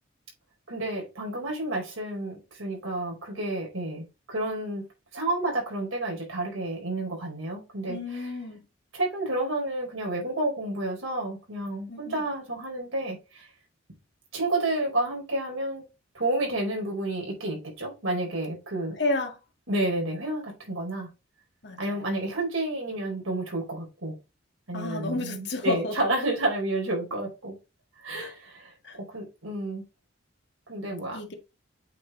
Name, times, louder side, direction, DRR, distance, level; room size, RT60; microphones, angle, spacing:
voice 1, 0.7-4.8 5.1-8.3 8.9-13.5 14.3-15.8 16.1-19.0 19.7-21.1 21.8-24.2 24.7-27.5 28.0-28.7 29.1-29.8 30.7-31.2, right 2 dB, 85° right, 4.7 m, -30 dB
voice 2, 7.9-8.7 11.9-12.2 19.0-19.4 21.6-21.8 24.7-26.1 28.1-28.3 28.8-29.0 31.1-31.4, left 2 dB, 55° left, 1.7 m, -31 dB
8.4 x 5.0 x 3.8 m
head